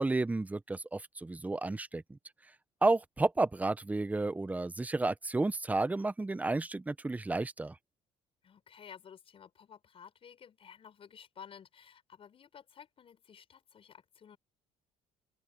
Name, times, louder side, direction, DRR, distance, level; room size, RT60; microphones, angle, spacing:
voice 1, 0.0-2.2 2.8-7.8, right 2 dB, 10° right, 0.8 m, -31 dB
voice 2, 8.4-14.4, left 8 dB, 45° left, 6.7 m, -53 dB
open air
cardioid pair, 95°, 13 cm